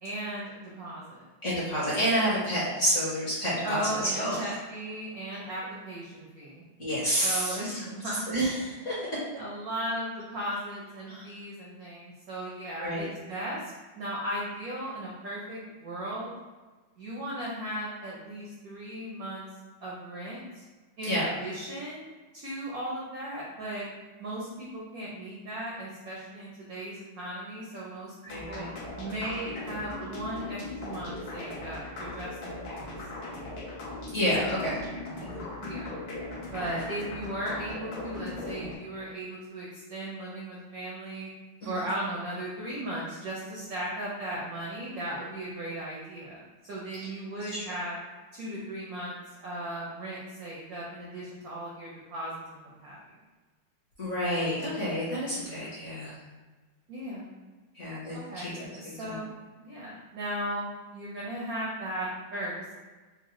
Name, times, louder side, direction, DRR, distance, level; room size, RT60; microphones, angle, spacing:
voice 1, 0.0-1.2 3.6-6.6 7.2-8.3 9.4-16.3 17.0-19.5 19.8-20.6 21.0-22.1 22.3-23.8 24.2-28.7 29.0-32.9 35.1-35.9 36.5-41.3 41.6-48.0 48.3-49.1 49.4-53.0 56.9-57.3 58.3-62.8, right 1 dB, 75° right, -5 dB, 0.8 m, -37 dB
voice 2, 1.4-4.4 6.8-7.8 8.3-9.0 11.1-11.3 12.8-13.1 21.1-21.4 28.2-28.7 34.1-34.8 35.2-35.4 36.6-36.8 41.6-41.9 47.4-47.6 54.0-56.2 57.7-59.2, equal, 45° left, -8 dB, 1.1 m, -29 dB
sound 1, 28.3-38.8, left 2 dB, 70° left, 1.4 m, -39 dB
4.6 x 2.2 x 3.0 m, 1.3 s
omnidirectional pair, 2.3 m